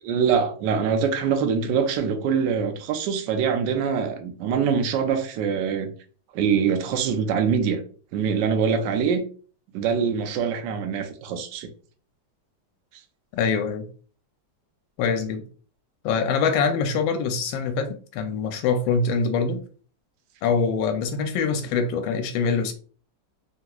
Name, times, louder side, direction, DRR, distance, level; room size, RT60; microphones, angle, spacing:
voice 1, 0.0-5.9 6.3-7.8 8.1-9.2 9.7-11.7, right 6 dB, 70° right, 1.2 m, -24 dB
voice 2, 13.3-13.9 15.0-15.4 16.0-19.6 20.4-22.7, left 5 dB, 85° left, 1.3 m, -24 dB
3.5 x 2.9 x 2.3 m
omnidirectional pair, 2.1 m